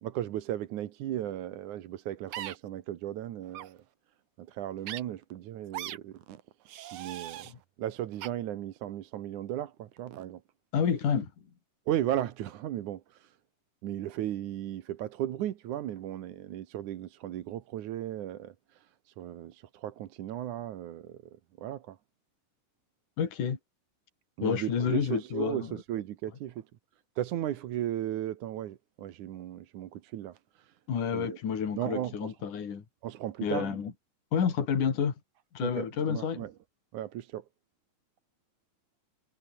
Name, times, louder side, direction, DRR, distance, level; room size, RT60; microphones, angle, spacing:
voice 1, 0.0-3.8 4.4-6.4 6.9-7.5 7.8-10.4 11.9-13.4 13.8-21.2 21.6-22.0 24.4-26.6 27.2-30.7 31.1-31.4 31.8-32.3 33.0-33.7 35.6-36.5 36.9-37.4, right 12 dB, 70° right, 2.6 m, -36 dB
sound 1, 2.3-2.6 3.5-3.7 4.8-5.0 5.7-6.0 6.7-7.5 8.2-8.3, right 12 dB, 90° right, 1.2 m, -39 dB
voice 2, 10.7-11.3 23.2-23.6 24.4-25.8 30.9-32.8 33.4-33.9 34.3-35.1 35.5-36.4, left 7 dB, 70° left, 4.6 m, -29 dB
omnidirectional pair, 3.8 m